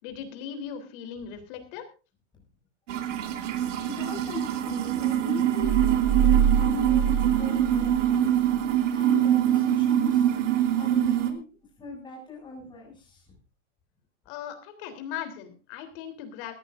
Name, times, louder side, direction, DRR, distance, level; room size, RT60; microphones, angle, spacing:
voice 1, 0.0-1.8 14.3-16.5, left 8 dB, 45° left, 7 dB, 3.6 m, -38 dB
sound 1, 2.9-11.3, right 11 dB, 80° right, 2.7 m, -24 dB
voice 2, 3.8-8.3 8.9-10.3 10.7-11.5 11.8-13.4, left 4 dB, 10° left, -2 dB, 7.1 m, -39 dB
sound 2, 5.6-8.2 8.5-8.6, right 9 dB, 40° right, 1.6 m, -25 dB
20.0 x 14.5 x 2.6 m, 0.33 s
supercardioid pair, 160°, 36 cm